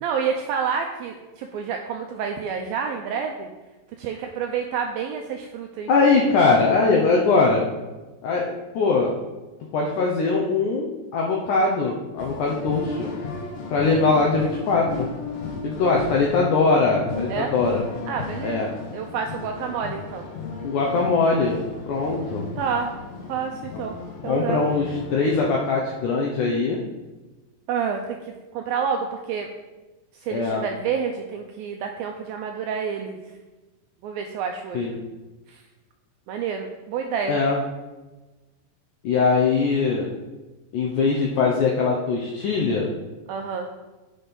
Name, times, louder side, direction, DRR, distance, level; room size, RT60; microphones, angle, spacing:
voice 1, 0.0-3.5 4.0-5.9 6.2-6.3 17.3-17.5 18.1-20.3 22.6-22.9 23.3-24.0 24.2-24.7 27.7-29.5 30.2-33.2 34.0-35.0 35.5-35.6 36.3-37.4 43.3-43.7, right 6 dB, 90° right, 4 dB, 2.1 m, -29 dB
voice 2, 5.9-7.7 8.2-9.1 9.7-13.1 13.7-15.1 15.6-17.8 18.4-18.7 20.6-21.6 21.9-22.5 24.3-26.8 30.3-30.6 34.7-35.0 37.3-37.6 39.0-40.1 40.7-42.9, left 4 dB, 80° left, -1 dB, 1.8 m, -21 dB
sound 1, 12.2-25.5, left 4 dB, 65° left, 2.3 m, -35 dB
8.6 x 6.3 x 5.3 m, 1.2 s
omnidirectional pair, 4.8 m